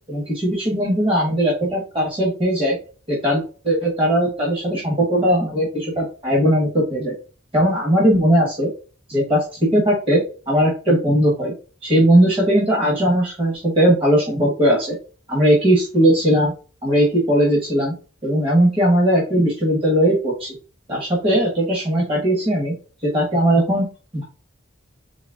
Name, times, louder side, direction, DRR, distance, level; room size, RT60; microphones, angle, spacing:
voice 1, 0.1-2.8 3.1-7.1 7.5-8.7 9.1-11.5 11.8-15.0 15.3-16.5 16.8-17.9 18.2-20.6 20.9-22.7 23.0-23.8 24.1-24.2, equal, 30° right, -4 dB, 1.2 m, -18 dB
4.0 x 2.9 x 3.7 m, 0.37 s
head